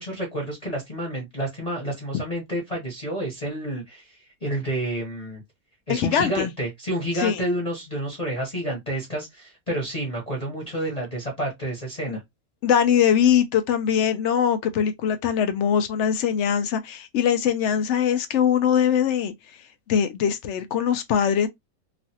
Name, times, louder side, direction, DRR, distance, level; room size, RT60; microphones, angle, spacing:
voice 1, 0.0-5.4 5.9-12.2, right 1 dB, 30° left, 0.9 m, -29 dB
voice 2, 5.9-6.5 7.1-7.4 12.1-12.2 12.6-19.3 19.9-21.5, left 8 dB, 65° left, 0.7 m, -22 dB
3.1 x 2.4 x 2.7 m
omnidirectional pair, 1.6 m